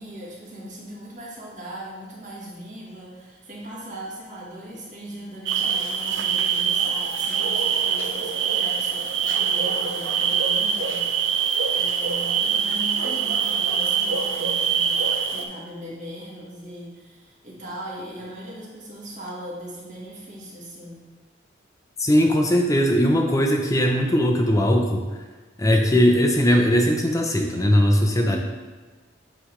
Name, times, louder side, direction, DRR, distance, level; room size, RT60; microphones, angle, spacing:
voice 1, 0.0-15.0 15.3-21.1 28.1-28.4, equal, 40° right, -5 dB, 1.6 m, -39 dB
sound 1, 5.5-15.5, right 7 dB, 90° right, 0.6 m, -24 dB
voice 2, 22.0-25.0 25.6-28.4, equal, 15° left, 2 dB, 0.6 m, -19 dB
8.1 x 3.3 x 3.7 m, 1.4 s
head